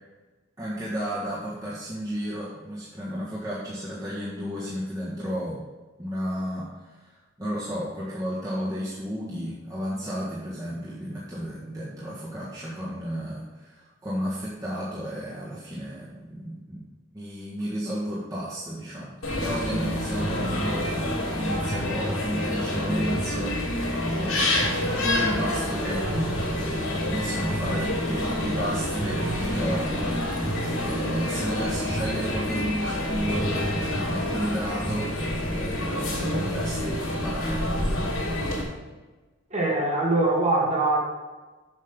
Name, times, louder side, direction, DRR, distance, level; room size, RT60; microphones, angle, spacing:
voice 1, 0.6-5.6 6.0-37.6, equal, 15° right, -7 dB, 1.6 m, -33 dB
sound 1, 19.2-38.6, left 1 dB, 85° left, 2.8 m, -27 dB
voice 2, 39.5-41.0, right 2 dB, 35° right, -2 dB, 2.0 m, -22 dB
7.5 x 6.6 x 5.4 m, 1.2 s
head